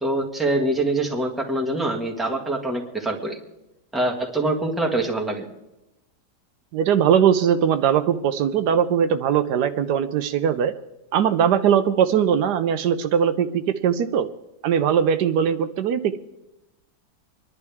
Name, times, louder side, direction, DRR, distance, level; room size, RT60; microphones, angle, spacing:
voice 1, 0.0-3.4 3.9-5.5, right 2 dB, ahead, -1 dB, 1.6 m, -24 dB
voice 2, 6.7-10.7 11.1-14.3 14.6-16.2, right 8 dB, 80° right, 10 dB, 1.3 m, -20 dB
26.0 x 11.0 x 3.5 m, 0.93 s
omnidirectional pair, 1.7 m